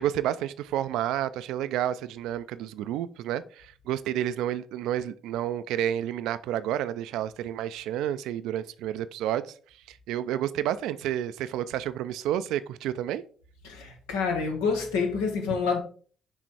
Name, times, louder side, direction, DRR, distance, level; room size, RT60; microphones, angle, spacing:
voice 1, 0.0-9.5 9.9-13.2, right 11 dB, 75° right, 0.3 m, -30 dB
voice 2, 13.6-15.8, left 5 dB, 85° left, 1.1 m, -27 dB
6.2 x 3.3 x 4.6 m
hypercardioid pair, 50°, 0 cm